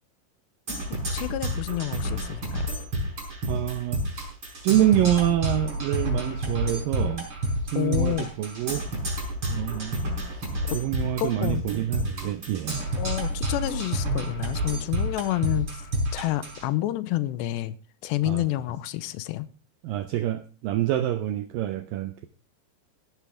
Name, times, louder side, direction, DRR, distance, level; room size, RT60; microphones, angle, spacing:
Percussion, 0.7-16.7, right 1 dB, 30° right, 5.6 m, -29 dB
voice 1, 1.1-2.7 7.8-8.3 11.2-11.6 13.0-15.8 16.1-17.8 18.0-19.5, left 15 dB, 85° left, 2.9 m, -29 dB
voice 2, 3.5-4.3 4.6-7.3 7.7-8.9 9.5-10.5 10.7-12.8 18.3-18.4 19.8-22.3, right 12 dB, 90° right, 1.9 m, -26 dB
16.0 x 12.0 x 3.4 m
omnidirectional pair, 5.0 m